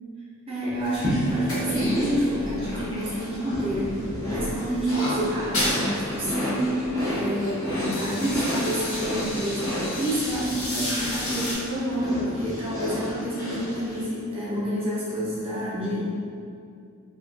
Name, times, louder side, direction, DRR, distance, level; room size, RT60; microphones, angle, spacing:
voice 1, 0.5-3.9 4.3-16.0, equal, 25° right, -9 dB, 0.8 m, -28 dB
sound 1, 0.8-3.4 3.7-5.9 6.2-6.3 6.6-7.0 7.4-11.6, left 1 dB, 70° left, 1.0 m, -32 dB
sound 2, 1.0-14.0, equal, 15° left, 0.7 m, -31 dB
3.6 x 2.2 x 2.4 m, 2.4 s
head